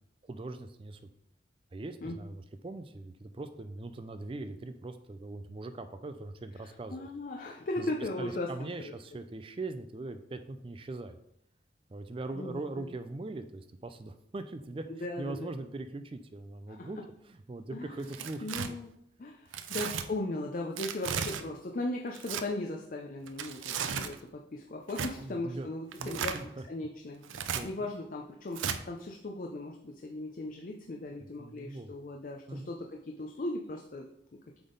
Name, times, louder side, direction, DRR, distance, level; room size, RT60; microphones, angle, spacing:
voice 1, 0.2-1.0 1.7-7.1 7.8-11.2 11.9-17.0 17.3-18.8 19.7-19.8 25.2-25.7 26.0-26.6 27.3-27.9 31.2-31.9 32.5-32.7, right 2 dB, 30° right, 10 dB, 0.4 m, -41 dB
voice 2, 6.6-8.5 8.8-8.9 12.3-12.8 14.9-15.5 16.8-16.9 17.7-18.0 18.4-18.9 19.2-26.4 26.7-34.1, left 2 dB, 45° left, 1 dB, 0.5 m, -38 dB
Tearing, 18.0-18.7 19.5-20.1 20.8-21.4 22.1-22.4 23.3-24.2 24.9-25.1 25.9-26.4 27.2-27.6 28.6-28.8, right 7 dB, 90° right, 0.5 m, -35 dB
7.9 x 3.5 x 3.8 m, 0.77 s
head